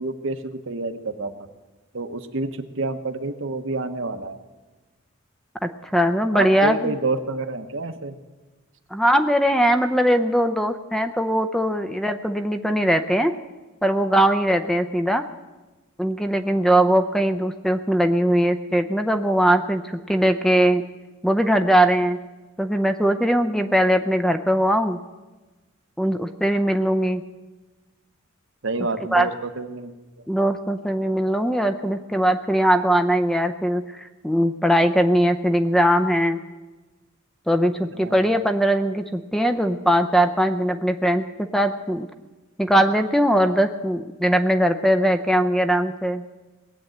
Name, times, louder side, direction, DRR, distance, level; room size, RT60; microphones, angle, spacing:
voice 1, 0.0-1.5 1.9-4.4 6.3-8.1 28.6-30.0 37.9-38.3, right 2 dB, 65° right, 8 dB, 1.1 m, -28 dB
voice 2, 5.6-6.9 8.9-13.3 13.8-15.2 16.0-20.8 21.2-22.2 22.6-25.0 26.0-27.2 29.1-29.3 30.3-36.4 37.5-41.3 41.5-42.1 42.6-46.2, equal, ahead, 8 dB, 0.5 m, -20 dB
19.5 x 8.6 x 7.8 m, 1.2 s
head